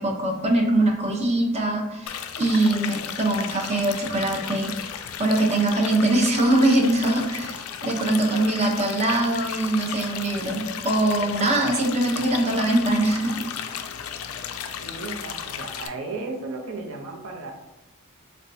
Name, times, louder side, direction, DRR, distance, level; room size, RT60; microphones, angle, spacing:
voice 1, 0.0-4.7 5.2-13.4, right 1 dB, 30° right, 1 dB, 0.6 m, -22 dB
sound 1, 2.1-15.9, left 8 dB, 70° left, 0.3 m, -34 dB
voice 2, 14.8-17.5, right 3 dB, 65° right, 1 dB, 0.7 m, -34 dB
4.2 x 2.2 x 2.6 m, 0.94 s
head